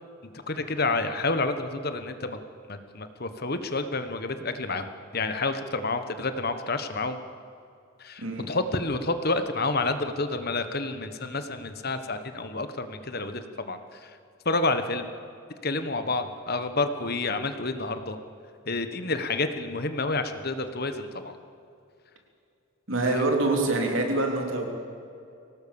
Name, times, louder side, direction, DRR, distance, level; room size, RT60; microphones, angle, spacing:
voice 1, 0.2-2.4 2.7-7.2 8.0-13.8 14.4-15.1 15.6-18.2 18.7-21.4 23.1-23.2, left 3 dB, 45° left, 9 dB, 1.3 m, -29 dB
voice 2, 8.2-8.5 22.9-24.7, right 2 dB, 65° right, 2 dB, 3.5 m, -25 dB
24.5 x 18.5 x 7.1 m, 2.5 s
head